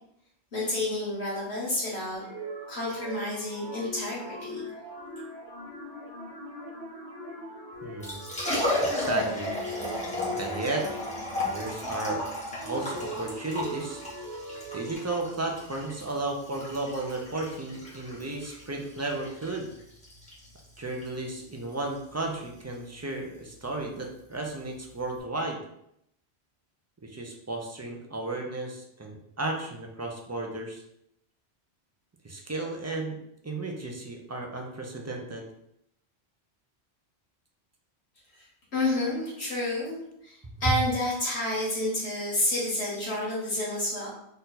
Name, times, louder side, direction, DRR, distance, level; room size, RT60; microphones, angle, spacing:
voice 1, 0.5-2.2 2.7-4.6 38.7-40.0 40.2-44.1, left 1 dB, 75° left, -7 dB, 1.6 m, -29 dB
sound 1, 2.1-14.9, equal, 35° left, 1.5 m, -41 dB
Liquid, 7.8-25.2, left 1 dB, 5° left, 1.2 m, -35 dB
voice 2, 7.8-8.2 8.9-9.5 10.4-10.9 11.5-12.2 12.6-14.0 14.7-19.7 20.8-25.6 27.0-30.8 32.2-33.2 33.4-35.4 40.7-40.8, right 2 dB, 20° right, 1 dB, 0.4 m, -33 dB
4.4 x 2.6 x 4.0 m, 0.75 s
omnidirectional pair, 1.1 m